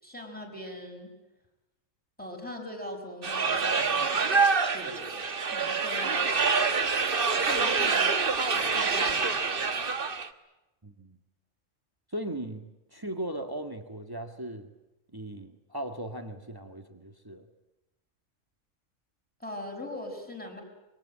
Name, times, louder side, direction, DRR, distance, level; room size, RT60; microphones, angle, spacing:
voice 1, 0.0-1.1 2.2-4.4 4.7-5.2 5.5-6.3 7.3-9.9 19.4-20.6, left 1 dB, 5° left, 1 dB, 6.3 m, -41 dB
sound 1, 3.2-10.3, right 4 dB, 45° right, 1.5 m, -26 dB
voice 2, 10.8-11.2 12.1-14.7 15.1-17.5, right 1 dB, 15° right, 6 dB, 1.9 m, -38 dB
25.5 x 24.0 x 8.8 m, 0.97 s
omnidirectional pair, 1.4 m